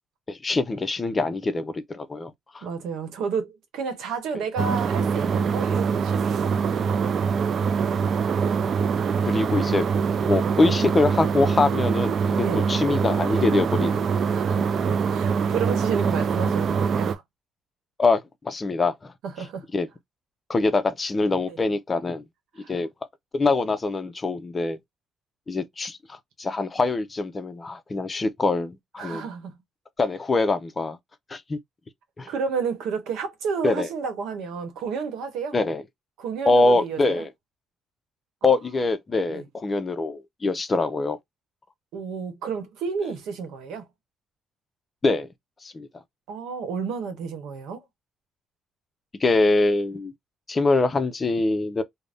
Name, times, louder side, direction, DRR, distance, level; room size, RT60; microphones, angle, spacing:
voice 1, 0.3-2.7 7.8-8.1 9.3-9.9 10.3-14.0 18.0-19.1 19.7-19.9 20.5-22.2 22.7-22.9 23.3-24.8 25.5-29.2 30.0-31.0 31.3-31.6 32.2-32.3 33.6-33.9 35.5-35.8 36.5-37.3 38.4-41.2 45.0-45.3 45.6-45.9 49.2-50.1 50.5-51.8, left 3 dB, 30° left, 0.5 m, -24 dB
voice 2, 2.6-6.9 12.4-12.7 14.3-17.2 19.2-19.7 21.5-21.6 22.6-22.7 29.0-29.6 32.3-35.6 36.2-37.2 38.4-38.5 39.3-39.4 41.9-43.9 46.3-47.8, right 5 dB, 90° right, 0.9 m, -31 dB
sound 1, 4.6-17.2, right 6 dB, 55° right, 0.3 m, -24 dB
2.5 x 2.1 x 3.3 m
cardioid pair, 90°, 0 cm